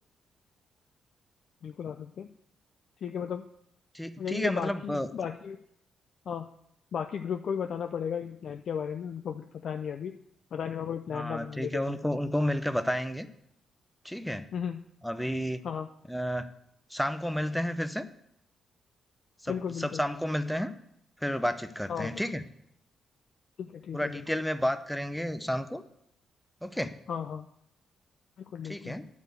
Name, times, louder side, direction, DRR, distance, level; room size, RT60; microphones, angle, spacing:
voice 1, 1.6-2.3 3.0-3.4 4.2-5.6 6.3-6.5 6.9-10.2 10.5-12.1 14.5-14.8 15.6-15.9 19.5-20.0 21.9-22.2 23.6-24.2 27.1-27.5 28.5-29.0, left 7 dB, 60° left, 6 dB, 0.5 m, -35 dB
voice 2, 3.9-5.1 11.1-13.3 14.0-14.5 15.0-15.6 16.1-16.5 16.9-18.1 19.4-20.7 21.2-22.4 23.9-25.8 26.6-27.0 28.6-29.1, equal, ahead, 11 dB, 0.6 m, -31 dB
9.8 x 4.9 x 7.9 m, 0.74 s
cardioid pair, 110°, 0 cm